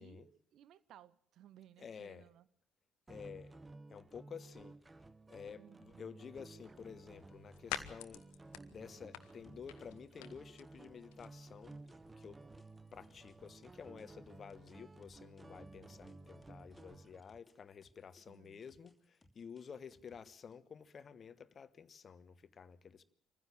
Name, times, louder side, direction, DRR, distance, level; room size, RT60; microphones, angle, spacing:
voice 1, 0.0-2.5 5.6-6.0 18.3-18.7, right 11 dB, 55° right, 0.8 m, -61 dB
voice 2, 1.8-2.2 3.1-3.6 3.9-4.8 5.3-8.2 8.7-11.8 12.2-12.4 12.9-23.0, left 6 dB, 40° left, 1.2 m, -52 dB
sound 1, 3.1-17.2, right 3 dB, 20° right, 1.0 m, -56 dB
sound 2, 6.5-15.1, left 13 dB, 65° left, 1.0 m, -52 dB
sound 3, 9.4-14.1 14.5-17.5 17.8-20.5, left 2 dB, 20° left, 2.8 m, -67 dB
25.5 x 15.0 x 7.4 m
figure-of-eight pair, 45°, 0 cm